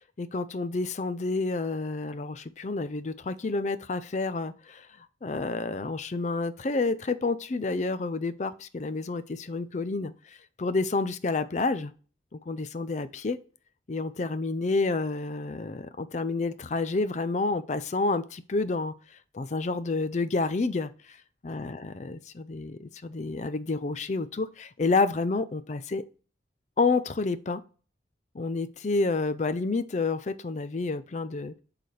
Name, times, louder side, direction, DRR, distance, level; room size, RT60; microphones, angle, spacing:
voice 1, 0.2-10.1 10.6-11.9 12.3-13.4 13.9-18.9 19.3-21.2 21.4-26.0 26.8-27.6 28.3-31.5, left 3 dB, 40° left, 0.4 m, -29 dB
11.0 x 4.0 x 3.2 m
head